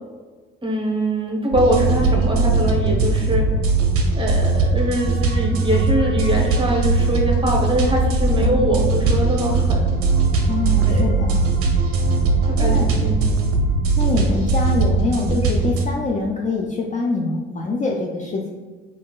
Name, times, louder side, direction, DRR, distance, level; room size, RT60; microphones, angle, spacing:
voice 1, 0.6-3.5 4.1-9.8 10.8-11.2 12.5-13.3, equal, 15° right, -1 dB, 0.8 m, -23 dB
sound 1, 1.5-15.9, right 3 dB, 45° right, 0.6 m, -19 dB
voice 2, 10.5-11.5 12.6-13.0 14.0-18.5, left 3 dB, 25° left, -1 dB, 0.4 m, -24 dB
3.6 x 2.5 x 2.2 m, 1.3 s
hypercardioid pair, 60°, 31 cm